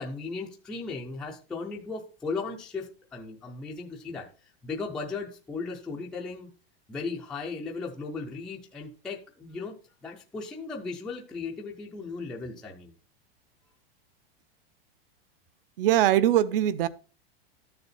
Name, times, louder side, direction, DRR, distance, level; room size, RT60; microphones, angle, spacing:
voice 1, 0.0-6.5 6.9-9.8 10.0-12.9, left 4 dB, ahead, 0.4 m, -36 dB
voice 2, 15.8-16.9, right 12 dB, 65° right, 0.8 m, -22 dB
12.5 x 6.8 x 4.1 m
supercardioid pair, 175°, 30 cm